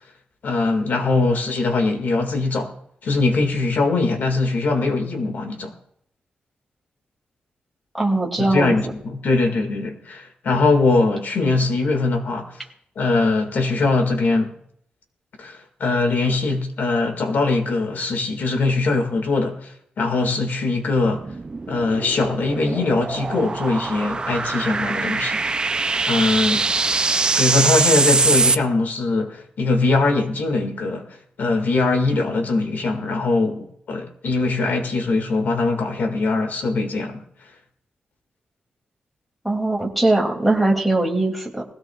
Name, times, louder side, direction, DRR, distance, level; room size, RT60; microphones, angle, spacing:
voice 1, 0.4-2.7 3.0-5.7 8.5-12.5 13.0-14.5 15.4-19.7 20.0-21.2 21.7-25.4 26.0-26.7 27.4-31.1 31.4-37.2, left 3 dB, 65° left, 1.9 m, -21 dB
voice 2, 7.9-8.7 39.4-41.6, right 2 dB, ahead, 2.6 m, -20 dB
sound 1, 21.1-28.6, right 4 dB, 25° right, 0.4 m, -22 dB
19.5 x 16.5 x 2.4 m
wide cardioid pair, 150°, 3 cm